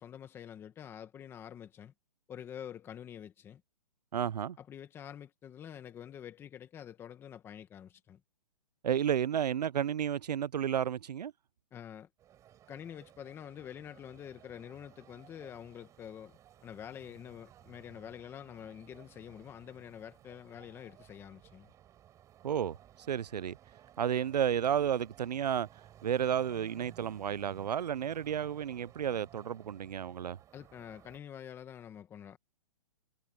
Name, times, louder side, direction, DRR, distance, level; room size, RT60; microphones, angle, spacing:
voice 1, 0.0-1.9 2.3-3.6 4.6-8.2 11.7-12.1 12.7-21.7 30.5-32.4, left 9 dB, 10° left, 1.4 m, -47 dB
voice 2, 4.1-4.6 8.8-11.3 22.4-22.8 23.1-23.6 24.0-25.7 26.0-30.4, right 9 dB, 90° right, 0.6 m, -32 dB
sound 1, 12.2-31.2, right 11 dB, 15° right, 5.3 m, -58 dB
hypercardioid pair, 160°, 20 cm